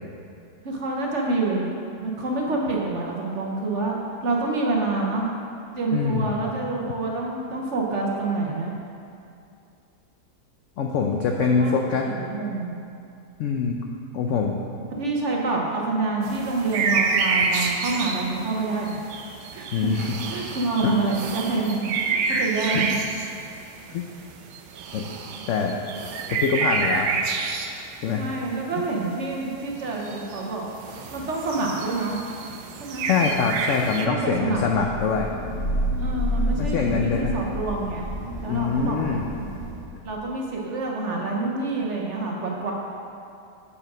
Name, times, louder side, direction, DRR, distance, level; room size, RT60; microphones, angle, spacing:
voice 1, 0.6-1.6 2.0-5.3 5.7-8.7 11.5-11.8 12.0-12.8 14.9-19.0 19.5-20.0 20.3-22.9 28.2-30.6 31.1-32.2 32.8-33.1 33.9-34.6 36.0-38.1 38.4-39.5 40.0-42.7, right 3 dB, 50° right, -2 dB, 1.0 m, -27 dB
voice 2, 5.9-6.4 10.8-12.1 13.4-13.9 14.1-14.6 19.7-20.2 20.8-21.0 22.7-22.9 23.9-24.0 24.9-25.0 25.5-25.8 26.3-27.1 28.0-28.2 33.1-35.3 36.6-37.3 38.5-39.2, left 5 dB, 75° left, 1 dB, 0.7 m, -24 dB
sound 1, 16.2-27.9 28.3-28.4 29.0-29.1 29.4-29.5 29.8-30.4 30.7-34.1, right 4 dB, 85° right, 1.2 m, -28 dB
Thunder / Rain, 34.3-40.1, equal, 40° left, 1.5 m, -29 dB
7.2 x 4.9 x 6.0 m, 2.6 s
omnidirectional pair, 1.8 m